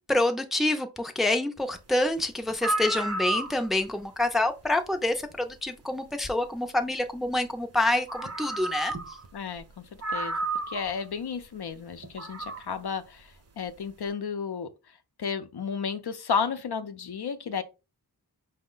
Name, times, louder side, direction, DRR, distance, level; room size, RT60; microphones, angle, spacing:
voice 1, 0.1-9.0, left 2 dB, ahead, 0.5 m, -27 dB
sound 1, 2.2-2.3 2.5-3.9 5.3-5.4 7.6-7.7 8.1-9.3 9.6-9.7 10.0-11.0 12.0-12.6, right 2 dB, 40° right, 0.7 m, -32 dB
voice 2, 9.3-9.8 10.1-10.4 10.7-13.3 13.6-14.7 15.2-17.6, left 6 dB, 70° left, 0.6 m, -32 dB
5.2 x 2.1 x 3.8 m
wide cardioid pair, 80°, 41 cm